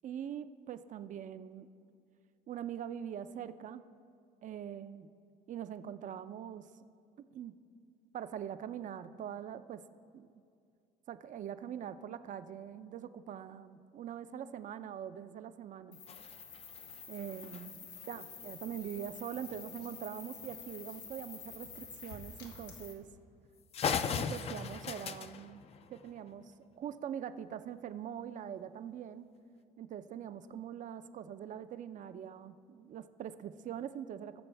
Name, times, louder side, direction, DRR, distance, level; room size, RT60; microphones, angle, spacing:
voice 1, 0.0-1.7 2.5-3.9 4.4-5.1 5.5-6.7 7.3-7.6 8.1-9.8 10.1-10.3 11.1-16.0 17.1-17.8 18.1-23.1 24.1-25.6 25.9-29.3 29.8-34.4, right 9 dB, 50° right, 12 dB, 0.5 m, -43 dB
sound 1, 15.9-22.9, left 6 dB, 90° left, 1.6 m, -49 dB
sound 2, 16.1-18.0 19.5-19.6 20.0-20.1 20.5-20.6 21.5-21.7 22.4-22.6 23.0-23.1 23.4-23.5 23.7-26.4, left 6 dB, 35° left, 0.4 m, -39 dB
19.0 x 6.9 x 3.4 m, 2.4 s
cardioid pair, 110°, 17 cm